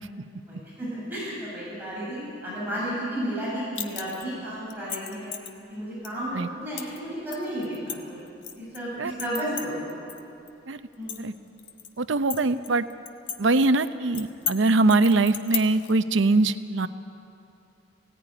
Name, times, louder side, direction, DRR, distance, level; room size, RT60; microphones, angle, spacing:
voice 1, 0.5-5.3 5.7-8.2 8.5-9.7 11.0-11.3, equal, 10° right, -8 dB, 7.2 m, -33 dB
sound 1, 3.8-4.3 4.7-5.5 6.0-6.1 6.8-7.0 7.3-8.8 9.2-10.2 10.5-10.6 10.9-11.9 12.3-13.4 13.6-13.7 14.1-14.6 14.9-15.9, left 8 dB, 85° left, 1.4 m, -34 dB
voice 2, 12.0-12.9 13.4-16.9, right 2 dB, 80° right, 12 dB, 0.7 m, -22 dB
18.5 x 17.0 x 9.7 m, 2.7 s
head